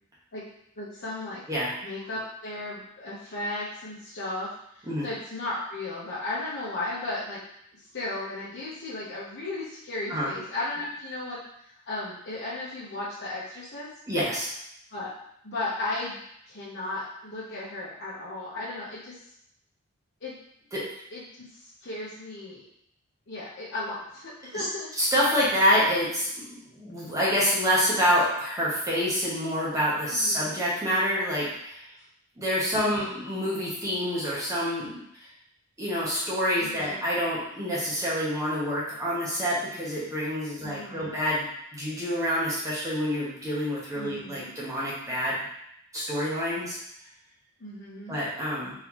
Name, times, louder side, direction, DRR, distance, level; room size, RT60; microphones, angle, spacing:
voice 1, 0.8-1.4 1.8-7.4 7.7-13.9 14.9-15.1 15.4-16.2 16.5-19.2 20.2-20.4 21.1-22.6 23.3-24.9 30.1-30.6 32.8-33.3 36.6-37.0 40.6-41.2 43.9-44.5 47.6-48.2, left 2 dB, 50° left, -9 dB, 0.9 m, -35 dB
voice 2, 14.1-14.5 20.7-20.8 24.5-24.7 25.0-31.9 32.4-35.0 35.8-45.4 45.9-46.8 48.1-48.7, equal, 15° right, -7 dB, 1.0 m, -27 dB
3.8 x 3.3 x 3.0 m, 0.74 s
head